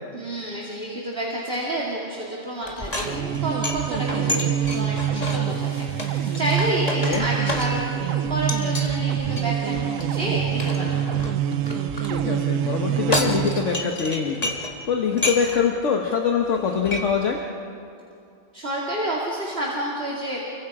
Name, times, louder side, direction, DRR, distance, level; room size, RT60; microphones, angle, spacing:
voice 1, 0.1-11.0 18.5-20.4, right 1 dB, 45° right, -4 dB, 2.6 m, -29 dB
sound 1, 2.6-8.0 8.5-8.9 9.4-12.1 12.8-14.8 15.1-15.7 16.1-16.2 16.5-17.0, left 2 dB, 30° left, 1.8 m, -31 dB
sound 2, 2.9-14.0, right 9 dB, 90° right, 1.1 m, -25 dB
voice 2, 12.1-17.4, left 6 dB, 65° left, 2 dB, 1.5 m, -24 dB
30.0 x 22.5 x 4.9 m, 2.6 s
omnidirectional pair, 1.3 m